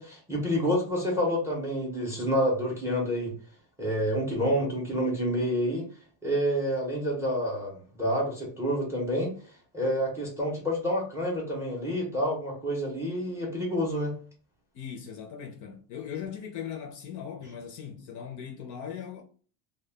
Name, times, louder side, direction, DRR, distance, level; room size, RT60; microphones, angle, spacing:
voice 1, 0.0-3.3 3.8-5.9 6.2-7.7 8.0-9.3 9.7-14.1, equal, 5° right, 0.5 m, -28 dB
voice 2, 14.7-19.2, left 8 dB, 45° left, 0.4 m, -39 dB
2.1 x 2.1 x 3.2 m
cardioid pair, 165°, 44 cm